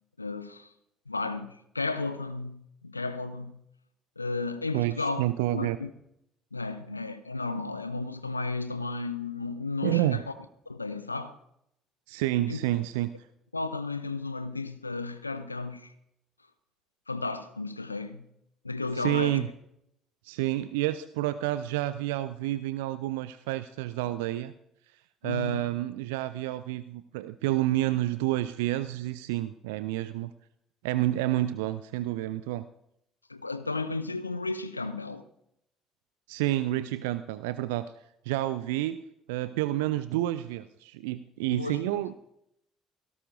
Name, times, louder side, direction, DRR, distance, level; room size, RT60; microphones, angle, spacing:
voice 1, 0.2-0.7 1.1-3.6 4.2-5.2 5.5-5.9 6.5-10.2 10.7-11.4 12.5-12.6 13.5-15.9 17.1-18.3 18.6-19.5 25.2-25.7 33.3-35.3 41.5-42.0, left 3 dB, 85° left, 0.7 m, -33 dB
voice 2, 4.7-5.8 9.8-10.2 12.1-13.1 19.0-19.5 20.2-24.5 24.9-30.3 30.8-32.7 36.3-37.9 38.2-39.0 39.3-42.2, right 15 dB, 65° right, 0.4 m, -29 dB
17.5 x 17.0 x 2.6 m
figure-of-eight pair, 50°, 0 cm